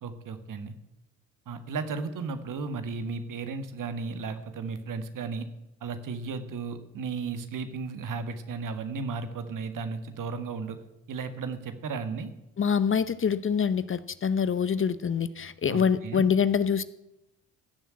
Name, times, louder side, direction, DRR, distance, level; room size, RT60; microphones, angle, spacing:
voice 1, 0.0-0.7 1.5-5.5 5.8-10.8 11.1-12.3 15.7-16.3, right 4 dB, 55° right, 10 dB, 1.8 m, -34 dB
voice 2, 12.6-16.8, left 7 dB, 35° left, 15 dB, 0.8 m, -25 dB
15.5 x 7.2 x 8.7 m, 0.89 s
hypercardioid pair, 50°, 38 cm